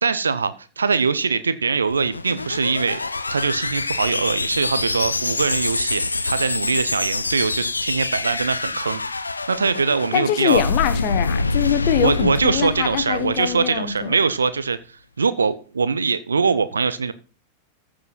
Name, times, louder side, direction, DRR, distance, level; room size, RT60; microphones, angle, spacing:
voice 1, 0.0-3.0 3.3-9.0 9.5-10.6 12.0-17.1, right 5 dB, 75° right, 14 dB, 0.6 m, -22 dB
sound 1, 1.8-14.1, left 3 dB, 80° left, 0.7 m, -26 dB
voice 2, 10.1-14.1, left 11 dB, 45° left, 11 dB, 1.4 m, -23 dB
14.5 x 5.0 x 5.6 m, 0.35 s
figure-of-eight pair, 90°, 0 cm